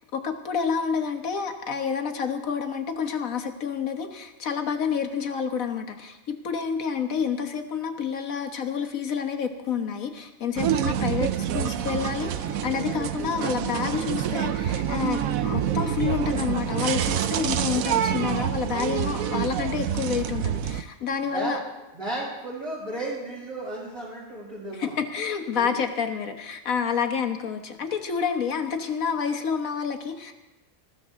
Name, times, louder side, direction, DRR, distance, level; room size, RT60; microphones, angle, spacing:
voice 1, 0.1-21.6 24.8-30.3, left 6 dB, 70° left, 5 dB, 1.7 m, -29 dB
sound 1, 10.6-20.8, right 10 dB, 80° right, 1.1 m, -27 dB
voice 2, 21.2-21.6 21.9-25.0 25.5-25.8, right 2 dB, 30° right, -8 dB, 5.3 m, -34 dB
20.0 x 14.5 x 3.8 m, 1.0 s
omnidirectional pair, 1.5 m